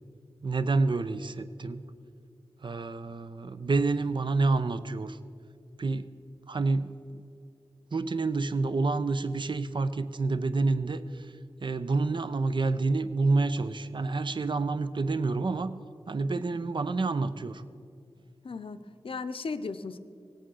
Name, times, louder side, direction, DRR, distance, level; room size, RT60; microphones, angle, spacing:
voice 1, 0.4-1.8 2.6-5.2 5.8-6.1 6.5-7.2 7.9-11.3 11.6-15.7 16.1-17.6, right 3 dB, 50° right, 12 dB, 0.6 m, -28 dB
voice 2, 18.4-20.0, left 4 dB, 65° left, 11 dB, 0.6 m, -36 dB
17.5 x 8.3 x 6.3 m, 2.4 s
cardioid pair, 50°, 10 cm